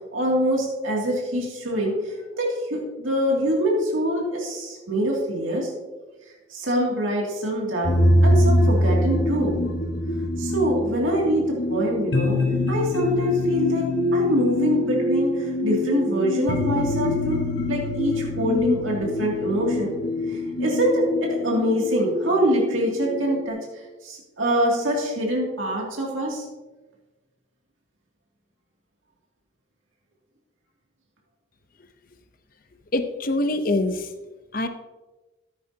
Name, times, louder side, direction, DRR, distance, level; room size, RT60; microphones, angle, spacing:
voice 1, 0.1-5.7 6.5-7.9 8.2-9.6 10.4-12.4 12.7-19.9 20.3-23.6 24.0-26.5, equal, 85° right, -2 dB, 2.6 m, -24 dB
sound 1, 7.8-23.4, left 1 dB, 60° left, 1.5 m, -24 dB
voice 2, 32.9-34.1 34.5-34.7, left 2 dB, 45° left, 9 dB, 0.7 m, -24 dB
14.0 x 9.8 x 2.9 m, 1.2 s
head